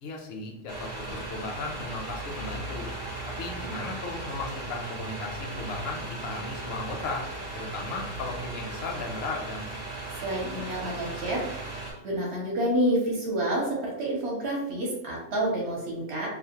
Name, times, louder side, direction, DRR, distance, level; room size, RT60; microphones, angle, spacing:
voice 1, 0.0-2.9 3.4-7.3 7.5-9.7, left 3 dB, 65° left, 1 dB, 0.7 m, -36 dB
sound 1, 0.7-11.9, right 2 dB, 30° right, 0.5 m, -37 dB
voice 2, 10.2-11.6 12.0-16.3, right 1 dB, 60° right, -3 dB, 0.9 m, -28 dB
2.4 x 2.0 x 2.7 m, 0.82 s
omnidirectional pair, 1.3 m